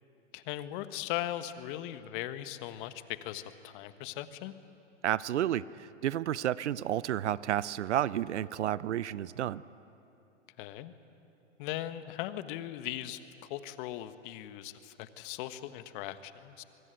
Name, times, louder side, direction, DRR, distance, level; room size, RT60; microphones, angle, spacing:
voice 1, 0.3-4.5 10.6-10.9 11.6-16.6, left 13 dB, 45° left, 11 dB, 1.4 m, -39 dB
voice 2, 5.0-9.6, right 11 dB, 70° right, 19 dB, 0.7 m, -31 dB
25.0 x 23.5 x 9.1 m, 2.9 s
hypercardioid pair, 110°, 37 cm